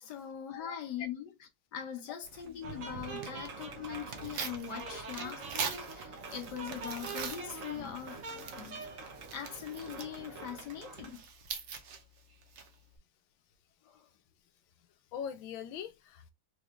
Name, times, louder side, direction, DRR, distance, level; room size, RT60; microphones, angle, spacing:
voice 1, 0.0-1.3 1.7-8.2 8.5-8.8 9.3-11.2 13.8-14.1, left 9 dB, 65° left, 1.4 m, -42 dB
Tearing, 2.2-13.0, right 6 dB, 85° right, 0.6 m, -44 dB
sound 1, 2.6-11.2, right 4 dB, 55° right, 1.0 m, -44 dB
voice 2, 15.1-16.3, left 8 dB, 85° left, 1.5 m, -43 dB
4.5 x 3.1 x 2.4 m
omnidirectional pair, 2.1 m